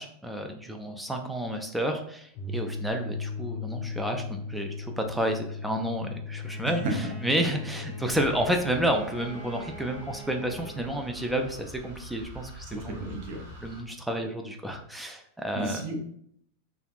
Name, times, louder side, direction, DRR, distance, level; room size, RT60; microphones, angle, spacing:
voice 1, 0.0-13.2 13.6-15.8, right 1 dB, 5° right, 3 dB, 0.3 m, -30 dB
sound 1, 2.3-8.3, left 4 dB, 35° left, 0.6 m, -37 dB
Bowed string instrument, 6.4-11.5, right 2 dB, 20° right, 1.5 m, -46 dB
sound 2, 8.1-13.8, equal, 70° right, 1.1 m, -45 dB
voice 2, 12.7-13.4 15.5-16.0, right 2 dB, 50° right, 2 dB, 0.6 m, -35 dB
3.3 x 2.3 x 2.5 m, 0.68 s
figure-of-eight pair, 90°, 0 cm